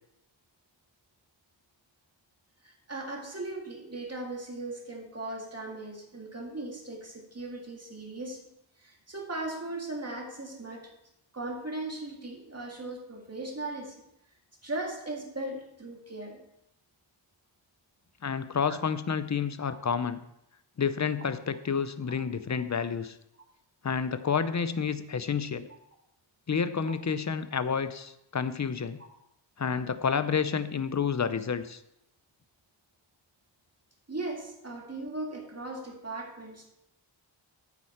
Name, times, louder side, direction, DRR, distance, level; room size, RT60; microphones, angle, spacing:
voice 1, 2.6-8.4 8.8-10.9 11.3-14.0 14.6-16.4 18.7-18.8 19.7-19.8 34.1-36.7, right 2 dB, 30° right, 1 dB, 2.0 m, -38 dB
voice 2, 18.2-20.2 20.8-23.2 23.8-25.7 26.5-29.0 29.6-31.8, left 6 dB, 35° left, 13 dB, 0.6 m, -29 dB
9.1 x 8.2 x 4.3 m, 0.81 s
wide cardioid pair, 90°, 47 cm